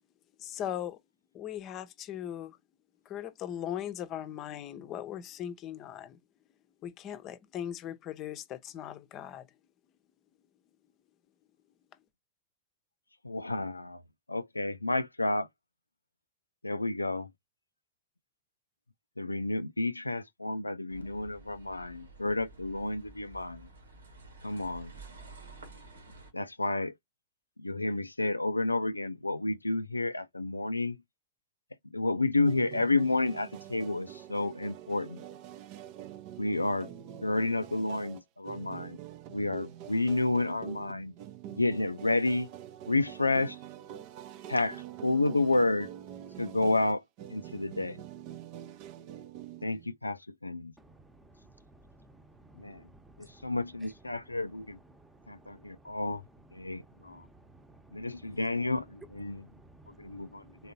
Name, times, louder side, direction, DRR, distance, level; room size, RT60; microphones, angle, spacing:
voice 1, 0.4-1.0 1.3-2.6 3.0-6.2 6.8-9.5, left 10 dB, 35° left, 0.7 m, -39 dB
voice 2, 13.2-14.0 14.3-15.5 16.6-17.3 19.2-23.7 24.4-24.9 26.3-26.9 27.6-31.0 31.9-35.2 36.4-36.9 37.2-39.0 39.3-41.1 41.5-42.5 42.9-43.6 44.5-45.9 46.4-47.0 47.3-48.0 49.6-50.7 52.6-52.9 53.2-54.8 55.3-56.2 56.5-57.2 57.9-59.5 59.9-60.7, left 2 dB, 85° left, 0.3 m, -30 dB
sound 1, 20.9-26.3, right 2 dB, 70° right, 1.6 m, -51 dB
sound 2, 32.4-49.9, right 11 dB, 45° right, 0.6 m, -46 dB
voice 3, 50.8-53.9 54.9-56.0 56.6-58.4 59.3-60.7, right 2 dB, 10° right, 1.0 m, -57 dB
4.2 x 3.8 x 2.7 m
figure-of-eight pair, 90°, 0 cm